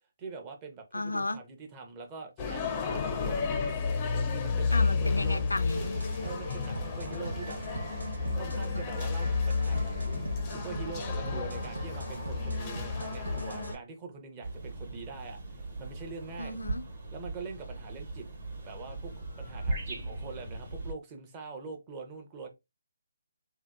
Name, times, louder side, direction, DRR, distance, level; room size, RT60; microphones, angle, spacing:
voice 1, 0.2-3.4 4.1-5.4 6.2-7.6 8.3-16.6 17.1-18.3 18.6-22.5, right 4 dB, 20° right, 0.6 m, -44 dB
voice 2, 0.9-1.4 4.7-6.0 16.4-16.8, left 2 dB, 90° left, 0.4 m, -33 dB
sound 1, 2.4-13.7, left 4 dB, 20° left, 0.4 m, -31 dB
sound 2, 5.8-13.8, right 2 dB, 85° right, 0.6 m, -39 dB
sound 3, 14.4-20.9, right 2 dB, 45° right, 1.2 m, -39 dB
2.7 x 2.0 x 2.3 m
figure-of-eight pair, 150°, 0 cm